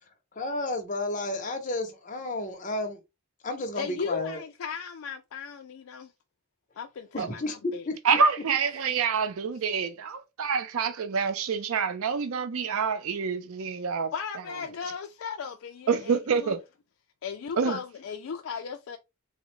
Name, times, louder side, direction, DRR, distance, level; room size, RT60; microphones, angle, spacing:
voice 1, 0.4-3.0 3.4-4.4 7.1-7.6 7.9-8.0, left 2 dB, 35° left, 0.7 m, -32 dB
voice 2, 3.7-6.1 6.8-7.9 14.1-16.5 17.2-19.0, left 6 dB, 70° left, 0.3 m, -36 dB
voice 3, 8.0-14.1 15.9-16.6 17.6-17.8, right 6 dB, 75° right, 0.4 m, -27 dB
3.6 x 2.1 x 3.0 m
head